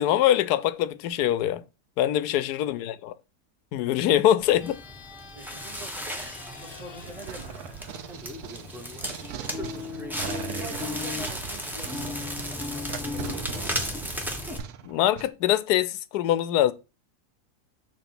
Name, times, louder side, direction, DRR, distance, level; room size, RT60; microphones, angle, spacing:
voice 1, 0.0-1.6 2.0-3.1 3.7-4.8 14.8-16.7, left 12 dB, 85° left, 1.1 m, -23 dB
Crackle, 4.4-14.6, left 1 dB, ahead, 1.0 m, -34 dB
sound 1, 4.5-9.0, left 5 dB, 40° left, 1.0 m, -49 dB
voice 2, 5.2-6.3 6.6-7.9 10.2-13.7, right 2 dB, 30° right, 0.9 m, -45 dB
sound 2, 7.0-15.3, right 9 dB, 80° right, 1.1 m, -40 dB
6.9 x 3.4 x 5.8 m
omnidirectional pair, 1.7 m